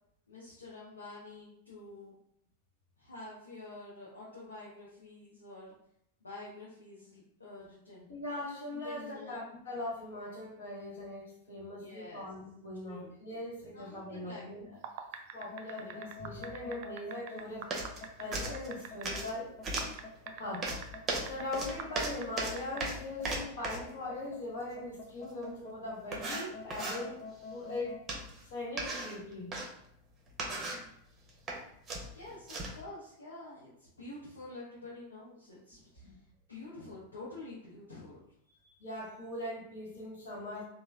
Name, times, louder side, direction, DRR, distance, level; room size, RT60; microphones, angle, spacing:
voice 1, 0.3-2.1 3.0-5.7 6.2-8.1 8.7-9.4 11.8-12.3 12.9-13.1 13.7-14.8 15.8-16.0 32.1-36.1 36.5-38.2, left 2 dB, 75° left, -7 dB, 0.7 m, -48 dB
voice 2, 8.1-14.7 15.3-17.7 18.2-19.5 20.4-20.7 21.2-28.0 28.4-29.6 36.0-36.2 38.6-40.6, left 2 dB, 60° left, -3 dB, 1.1 m, -40 dB
sound 1, 14.7-19.2 19.8-21.4 21.8-22.8, right 9 dB, 45° right, 0.3 m, -43 dB
sound 2, 15.4-28.0, left 4 dB, 30° left, 0.5 m, -47 dB
sound 3, 17.7-18.0 18.3-19.3 19.6-20.0 20.6-23.9 25.4-25.5 26.1-27.0 28.1-28.4 28.8-29.7 30.3-30.9 31.3-31.6 31.9-32.8, right 2 dB, 20° right, 0.7 m, -37 dB
3.2 x 2.2 x 3.2 m, 0.74 s
figure-of-eight pair, 90°, 0 cm